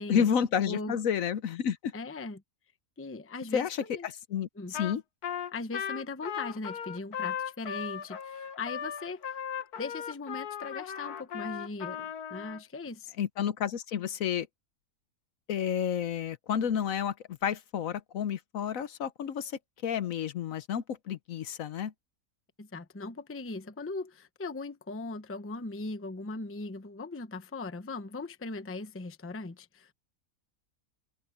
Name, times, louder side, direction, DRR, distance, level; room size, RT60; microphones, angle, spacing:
voice 1, 0.1-1.9 3.5-5.0 13.2-14.5 15.5-19.5 19.8-21.9, left 8 dB, 65° left, 1.1 m, -30 dB
voice 2, 0.7-1.0 1.9-2.4 3.0-4.1 4.6-4.7 5.5-9.4 9.8-13.1 22.6-29.9, left 3 dB, 10° left, 0.6 m, -39 dB
Trumpet, 4.7-5.0 5.2-12.6, left 8 dB, 80° left, 1.8 m, -37 dB
open air
omnidirectional pair, 1.6 m